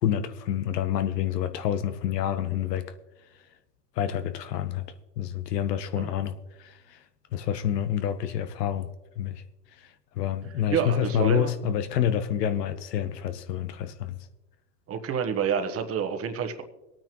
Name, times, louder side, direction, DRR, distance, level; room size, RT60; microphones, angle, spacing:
voice 1, 0.0-2.9 4.0-4.8 5.2-7.0 7.3-8.9 9.2-9.4 10.2-14.2, left 9 dB, 75° left, 1.1 m, -28 dB
voice 2, 10.7-11.5 14.9-16.6, right 7 dB, 30° right, 1.3 m, -28 dB
23.5 x 9.2 x 3.0 m
hypercardioid pair, 105°, 49 cm